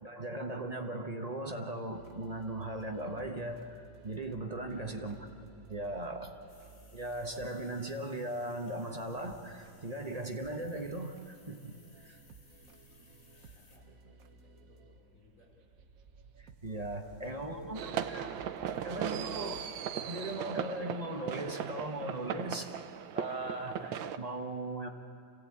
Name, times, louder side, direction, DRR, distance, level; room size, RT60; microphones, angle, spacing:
voice 1, 0.0-5.1 5.7-6.4 6.9-11.7 12.0-12.2 16.4-18.3 18.8-19.7 20.1-22.7 23.1-24.9, right 1 dB, 25° right, 4 dB, 1.1 m, -38 dB
sound 1, 1.9-20.6, right 4 dB, 55° right, 1.2 m, -57 dB
voice 2, 4.6-5.0 7.1-7.2 12.6-15.6 17.0-18.1 18.6-18.9, left 1 dB, 40° left, -2 dB, 4.9 m, -56 dB
sound 2, 6.5-13.8, left 2 dB, 60° left, 3.1 m, -63 dB
sound 3, 17.7-24.2, right 9 dB, 90° right, 1.6 m, -38 dB
27.0 x 16.5 x 8.7 m, 2.5 s
omnidirectional pair, 2.1 m